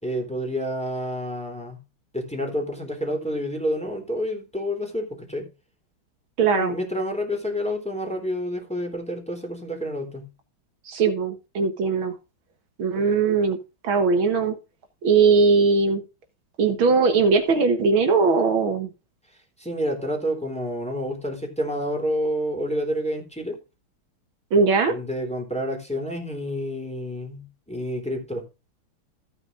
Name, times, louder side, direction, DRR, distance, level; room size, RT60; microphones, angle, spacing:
voice 1, 0.0-1.8 2.1-5.5 6.5-10.3 19.6-23.6 24.9-28.4, equal, 5° left, 3.4 m, -29 dB
voice 2, 6.4-6.8 10.9-12.1 12.8-13.6 13.8-14.6 15.0-16.0 16.6-18.9 24.5-24.9, right 4 dB, 75° right, 2.2 m, -20 dB
15.0 x 9.0 x 2.6 m
omnidirectional pair, 2.3 m